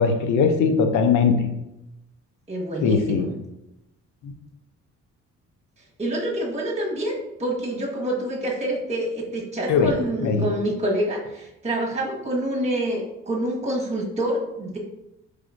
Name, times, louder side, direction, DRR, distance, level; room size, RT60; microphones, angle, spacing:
voice 1, 0.0-1.4 2.8-3.3 9.7-9.9 10.2-10.5, left 5 dB, 75° left, 6 dB, 0.6 m, -19 dB
voice 2, 2.5-3.3 6.0-14.8, right 1 dB, 20° right, -2 dB, 1.4 m, -27 dB
4.8 x 3.2 x 2.5 m, 0.89 s
cardioid pair, 90°, 30 cm